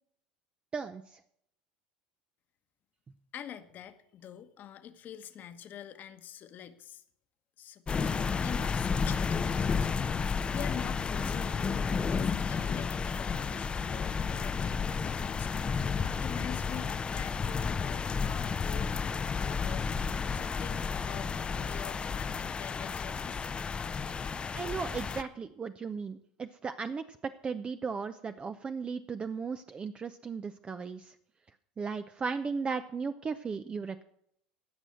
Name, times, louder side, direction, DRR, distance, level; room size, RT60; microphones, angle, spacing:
voice 1, 0.7-1.2 24.5-31.1 31.8-34.0, right 5 dB, 25° right, 10 dB, 0.6 m, -36 dB
voice 2, 3.3-7.0 7.6-15.8 16.1-18.9 19.4-20.0 20.3-23.5, left 10 dB, 45° left, 10 dB, 1.2 m, -46 dB
sound 1, 7.9-25.2, left 5 dB, 25° left, 0.6 m, -32 dB
17.0 x 6.2 x 6.6 m, 0.74 s
hypercardioid pair, 85°, 4 cm